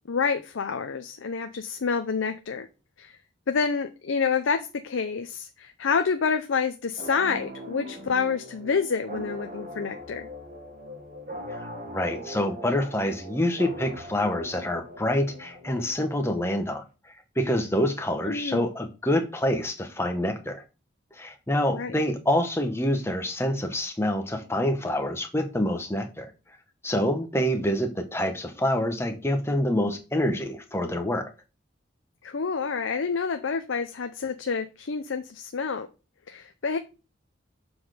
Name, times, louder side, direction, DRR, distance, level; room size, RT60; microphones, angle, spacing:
voice 1, 0.1-2.7 3.0-3.2 3.5-10.3 18.3-18.7 21.7-22.0 32.2-35.9 36.3-36.8, left 5 dB, 85° left, 0.6 m, -28 dB
sound 1, 7.0-16.4, equal, 40° right, 1.3 m, -40 dB
voice 2, 11.6-16.8 17.4-20.6 21.2-26.3 26.8-31.3, left 1 dB, 15° left, 0.9 m, -26 dB
7.0 x 4.0 x 5.0 m
head